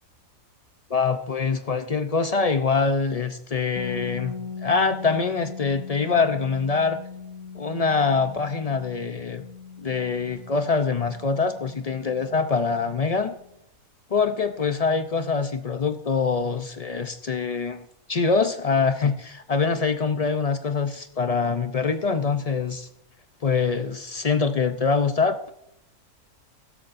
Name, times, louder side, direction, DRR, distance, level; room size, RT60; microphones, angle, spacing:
voice 1, 0.9-4.4 4.6-7.0 7.5-9.4 9.8-13.3 14.1-22.9 23.4-25.5, left 5 dB, 55° left, 9 dB, 0.4 m, -24 dB
sound 1, 3.8-13.5, left 6 dB, 75° left, 1.5 m, -40 dB
16.0 x 13.0 x 2.6 m, 0.79 s
omnidirectional pair, 1.6 m